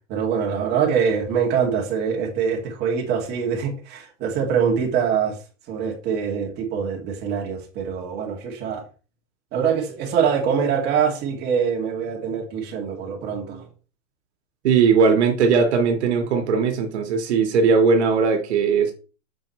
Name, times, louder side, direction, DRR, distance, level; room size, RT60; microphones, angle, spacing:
voice 1, 0.1-5.4 5.7-8.8 9.5-13.7, right 7 dB, 25° right, 2.6 m, -24 dB
voice 2, 14.6-18.9, right 5 dB, 60° right, 2.2 m, -19 dB
7.6 x 6.8 x 3.3 m
hypercardioid pair, 150°, 37 cm